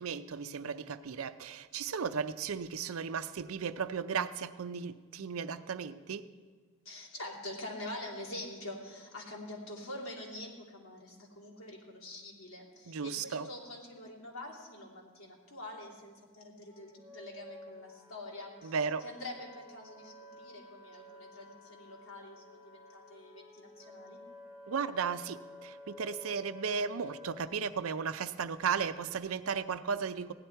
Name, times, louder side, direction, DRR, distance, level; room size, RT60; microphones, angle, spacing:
voice 1, 0.0-6.2 12.9-13.5 18.6-19.0 24.7-30.3, right 6 dB, 75° right, 12 dB, 0.5 m, -35 dB
voice 2, 6.8-24.2, left 1 dB, 75° left, -2 dB, 2.7 m, -45 dB
Wind instrument woodwind instrument, 16.6-27.4, left 2 dB, 20° right, 3.3 m, -52 dB
16.0 x 11.0 x 4.5 m, 1.5 s
head